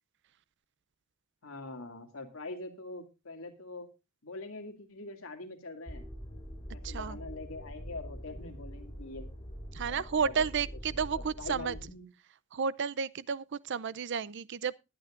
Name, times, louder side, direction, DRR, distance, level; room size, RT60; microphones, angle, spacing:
voice 1, 1.4-3.9 4.2-6.0 6.7-9.3 9.9-10.4 11.4-12.1, left 2 dB, 80° left, 2.3 m, -43 dB
sound 1, 5.9-11.9, equal, 25° left, 2.8 m, -44 dB
voice 2, 6.8-7.2 9.7-11.8 12.5-14.7, right 6 dB, 60° right, 0.5 m, -32 dB
20.5 x 9.1 x 2.5 m
head